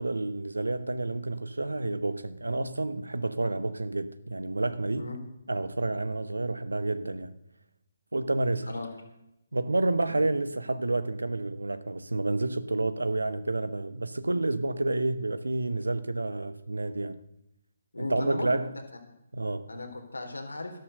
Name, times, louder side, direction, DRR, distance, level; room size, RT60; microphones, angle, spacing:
voice 1, 0.0-5.1 5.5-7.3 8.1-8.7 9.5-17.2 18.0-18.7 19.3-19.7, right 2 dB, 85° right, 1.0 m, -29 dB
voice 2, 17.9-18.6 19.7-20.8, left 2 dB, 85° left, 3.8 m, -36 dB
13.5 x 12.0 x 6.6 m
figure-of-eight pair, 140°, 0 cm